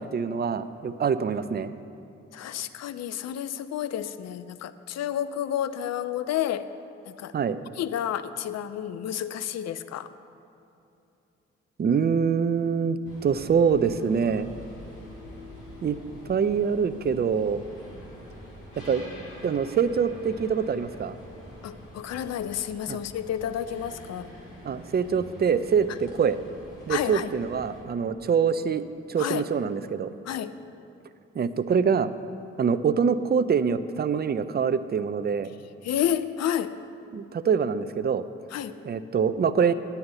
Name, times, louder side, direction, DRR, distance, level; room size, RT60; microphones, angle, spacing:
voice 1, 0.0-1.7 7.3-7.6 11.8-13.0 13.2-14.5 15.8-16.0 16.3-17.6 18.8-19.0 19.4-21.2 22.9-23.0 24.6-26.4 26.9-28.8 29.1-30.2 31.4-32.1 32.6-35.5 37.1-38.2 38.8-39.7, right 6 dB, 35° right, 12 dB, 0.5 m, -24 dB
voice 2, 2.3-6.7 7.1-7.3 7.8-10.1 21.6-24.3 26.9-27.3 29.2-29.4 30.3-30.5 35.8-36.7 38.5-38.8, left 10 dB, 60° left, 13 dB, 0.5 m, -30 dB
sound 1, 13.0-27.8, equal, 80° left, 2.3 m, -45 dB
9.4 x 5.7 x 7.9 m, 2.8 s
hypercardioid pair, 45°, 30 cm